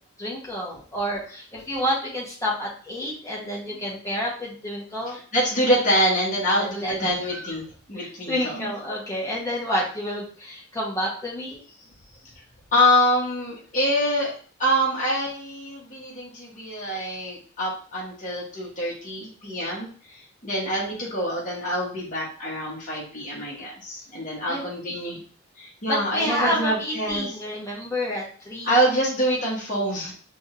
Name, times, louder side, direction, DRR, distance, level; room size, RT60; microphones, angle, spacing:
voice 1, 0.2-5.2 6.6-7.6 7.9-11.6 24.5-24.6 25.1-25.2 25.9-28.7, equal, 15° left, -5 dB, 1.3 m, -29 dB
voice 2, 5.3-7.6 7.9-8.7 12.7-19.9 20.4-25.2 25.6-27.3 28.7-30.1, equal, 35° left, -5 dB, 1.3 m, -25 dB
4.8 x 3.1 x 2.7 m, 0.43 s
head